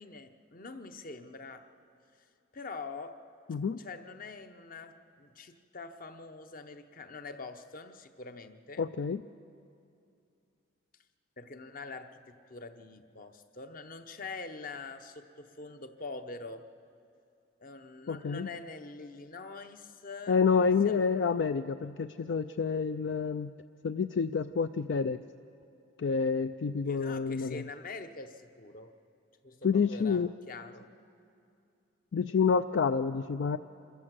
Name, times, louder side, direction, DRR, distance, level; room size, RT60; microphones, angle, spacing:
voice 1, 0.0-1.7 2.5-3.2 3.8-8.8 11.4-16.7 17.6-21.0 26.9-28.9 29.4-30.9, left 3 dB, 45° left, 8 dB, 0.9 m, -45 dB
voice 2, 8.8-9.2 18.1-18.5 20.3-23.5 23.8-25.2 26.0-27.6 29.6-30.3 32.1-33.6, left 5 dB, 65° left, 10 dB, 0.4 m, -28 dB
26.0 x 14.0 x 7.6 m, 2.6 s
head